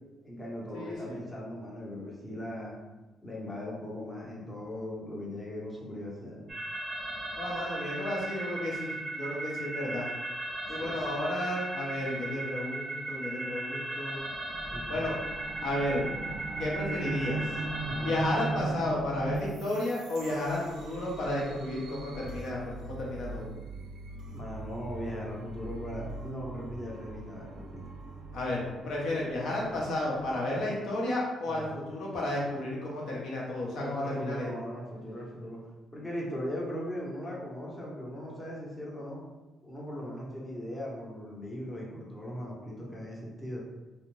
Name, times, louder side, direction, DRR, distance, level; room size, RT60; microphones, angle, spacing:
voice 1, 0.2-2.8 3.2-6.5 10.7-11.1 14.7-15.1 17.8-18.2 24.3-27.9 31.4-31.8 33.8-35.6 35.9-39.2 39.6-43.6, equal, 15° left, -4 dB, 0.8 m, -39 dB
voice 2, 0.7-1.2 7.3-10.1 10.7-14.2 14.9-15.2 15.6-16.0 16.6-17.4 18.0-23.5 28.3-34.5, left 1 dB, 70° left, -4 dB, 0.8 m, -32 dB
sound 1, 6.5-18.5, right 2 dB, 20° right, 0.6 m, -37 dB
sound 2, 14.5-30.7, right 2 dB, 70° right, 0.3 m, -40 dB
2.5 x 2.1 x 3.0 m, 1.2 s
cardioid pair, 90°, 0 cm